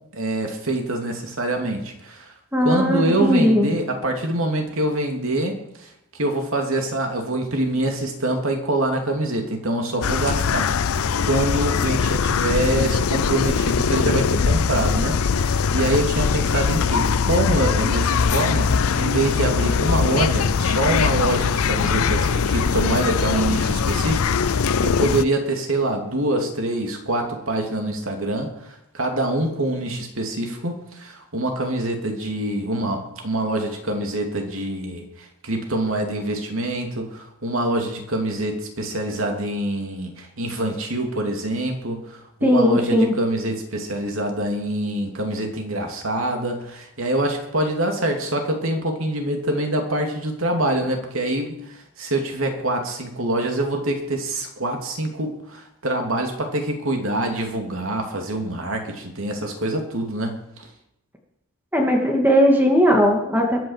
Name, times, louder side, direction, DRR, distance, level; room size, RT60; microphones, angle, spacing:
voice 1, 0.1-2.3 2.6-5.9 6.2-10.7 11.2-60.4, right 1 dB, 65° right, 3 dB, 2.9 m, -25 dB
voice 2, 2.5-3.7 42.4-43.1 61.7-63.6, equal, 10° right, 1 dB, 2.5 m, -18 dB
sound 1, 10.0-25.2, left 6 dB, 75° left, 0.5 m, -21 dB
22.5 x 7.8 x 7.5 m, 0.81 s
head